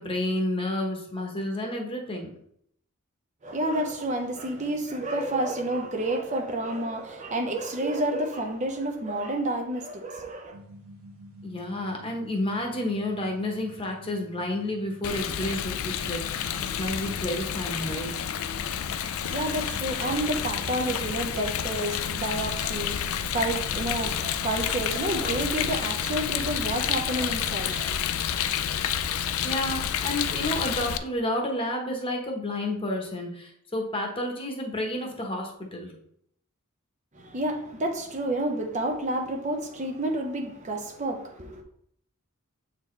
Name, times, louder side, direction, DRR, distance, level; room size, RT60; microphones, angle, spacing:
voice 1, 0.0-2.3 11.4-18.1 29.4-35.9, left 1 dB, 25° left, 1.0 m, -30 dB
voice 2, 3.4-10.6 19.2-28.2 37.1-41.6, right 1 dB, 35° right, 0.6 m, -30 dB
sound 1, 10.5-24.5, equal, 70° right, 1.1 m, -47 dB
Rain, 15.0-31.0, left 9 dB, 75° left, 0.4 m, -29 dB
7.6 x 4.0 x 3.2 m
head